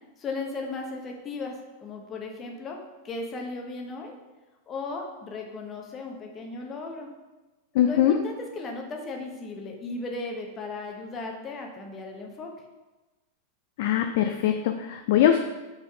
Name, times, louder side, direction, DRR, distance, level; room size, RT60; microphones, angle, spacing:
voice 1, 0.2-2.8 3.0-4.1 4.7-7.1 7.8-12.5, left 3 dB, 25° left, 2 dB, 1.1 m, -36 dB
voice 2, 7.7-8.2 13.8-15.4, left 10 dB, 50° left, 6 dB, 0.4 m, -22 dB
5.3 x 4.1 x 4.8 m, 1.1 s
figure-of-eight pair, 90°, 0 cm